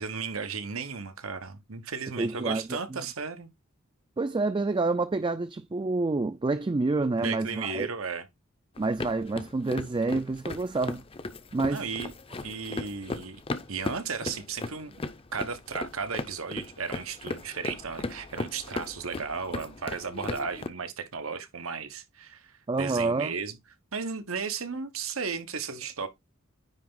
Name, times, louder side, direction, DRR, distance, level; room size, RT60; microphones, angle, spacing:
voice 1, 0.0-3.5 7.2-8.3 11.7-12.1 12.4-13.4 13.7-15.0 15.3-22.5 22.8-23.6 23.9-26.1, right 5 dB, 90° right, 1.2 m, -35 dB
voice 2, 2.2-2.8 4.2-7.9 8.8-11.0 11.5-11.9 22.7-23.3, right 3 dB, 25° right, 0.4 m, -28 dB
sound 1, 8.8-20.7, left 3 dB, 25° left, 0.6 m, -37 dB
9.7 x 3.4 x 3.8 m
head